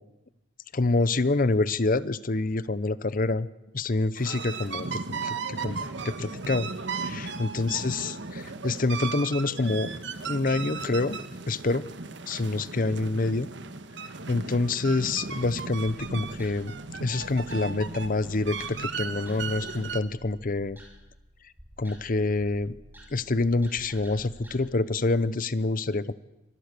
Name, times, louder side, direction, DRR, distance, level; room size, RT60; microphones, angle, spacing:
voice 1, 0.7-3.5 3.7-5.8 6.0-6.7 7.0-9.9 10.2-11.2 11.5-11.9 12.3-13.5 14.3-20.8 21.8-22.7 23.1-26.1, left 2 dB, 45° left, 17 dB, 0.8 m, -27 dB
sound 1, 4.2-20.0, right 4 dB, 65° right, 1.4 m, -36 dB
sound 2, 15.9-24.6, equal, 10° right, 5.2 m, -51 dB
25.0 x 20.0 x 6.8 m, 1.0 s
head